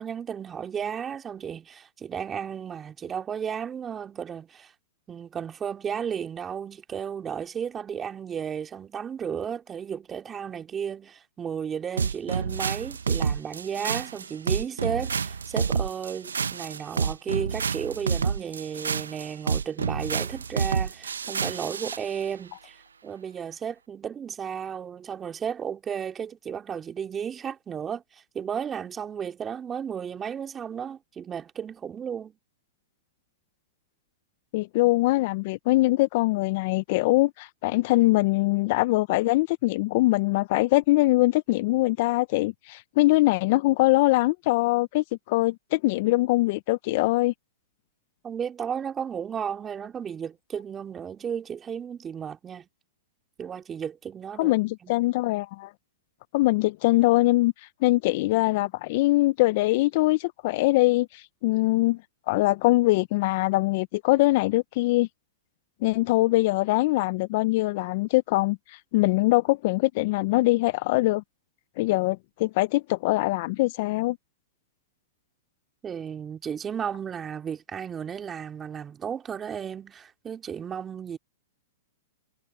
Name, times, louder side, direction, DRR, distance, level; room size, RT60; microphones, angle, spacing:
voice 1, 0.0-4.7 5.1-32.4 48.2-52.7 53.4-54.9 75.8-81.2, right 7 dB, 20° right, 2.8 m, -34 dB
sound 1, 12.0-22.0, right 6 dB, 85° right, 1.0 m, -28 dB
voice 2, 34.5-47.3 54.4-55.7 56.3-57.5 57.8-62.0 62.3-65.1 65.8-71.2 71.8-74.2, left 20 dB, 50° left, 0.6 m, -23 dB
hypercardioid pair, 120°, 0 cm